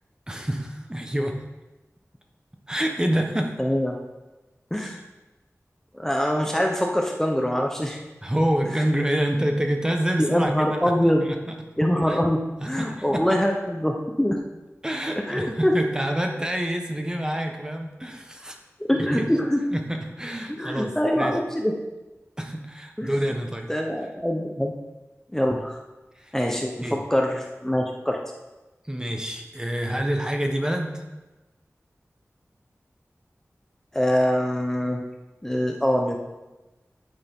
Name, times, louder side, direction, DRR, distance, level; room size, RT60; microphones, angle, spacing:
voice 1, 0.3-1.4 2.7-3.6 4.8-4.9 8.2-11.6 12.1-12.2 12.6-13.4 14.8-18.6 18.9-19.3 19.7-21.4 22.4-23.7 26.2-26.3 26.8-27.0 28.9-31.0, right 1 dB, 15° right, 3 dB, 1.2 m, -27 dB
voice 2, 3.6-3.9 4.7-5.0 5.9-8.0 10.2-11.3 11.8-14.4 15.1-15.7 18.9-19.6 20.5-21.7 23.0-23.1 23.7-24.7 25.3-25.8 26.3-28.2 33.9-35.0 35.4-36.2, equal, 10° left, 0 dB, 0.9 m, -24 dB
9.6 x 9.5 x 3.7 m, 1.1 s
wide cardioid pair, 75°, 5 cm